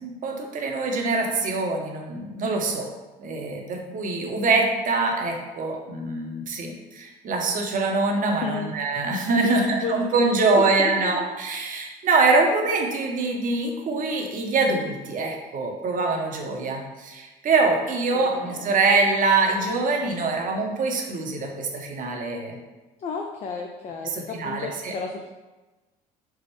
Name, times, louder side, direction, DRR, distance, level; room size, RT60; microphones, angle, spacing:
voice 1, 0.0-2.9 3.2-22.6 24.0-24.9, right 3 dB, 45° right, 1 dB, 0.8 m, -24 dB
voice 2, 9.4-11.2 18.1-18.7 23.0-25.3, left 5 dB, 35° left, 2 dB, 0.4 m, -32 dB
4.6 x 2.0 x 3.1 m, 1.2 s
hypercardioid pair, 70°, 20 cm